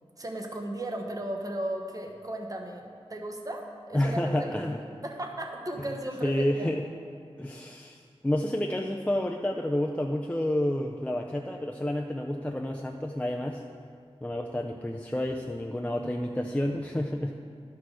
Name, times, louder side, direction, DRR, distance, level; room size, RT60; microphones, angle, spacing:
voice 1, 0.2-4.5 5.0-6.7, right 1 dB, 35° right, 2 dB, 1.2 m, -36 dB
voice 2, 3.9-4.8 5.9-6.0 6.2-6.8 7.4-13.6 14.2-17.3, left 1 dB, 10° left, 1 dB, 0.5 m, -29 dB
11.5 x 6.0 x 4.8 m, 2.3 s
wide cardioid pair, 60°, 11 cm